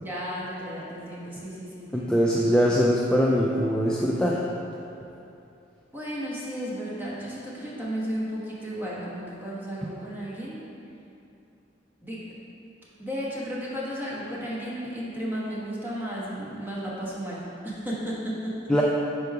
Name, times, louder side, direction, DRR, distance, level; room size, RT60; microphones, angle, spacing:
voice 1, 0.0-2.1 5.9-10.6 12.0-12.3 13.0-18.7, equal, 10° right, -7 dB, 1.0 m, -34 dB
voice 2, 1.9-4.4 18.7-18.8, equal, 5° left, -4 dB, 0.3 m, -22 dB
5.2 x 4.6 x 4.6 m, 2.8 s
head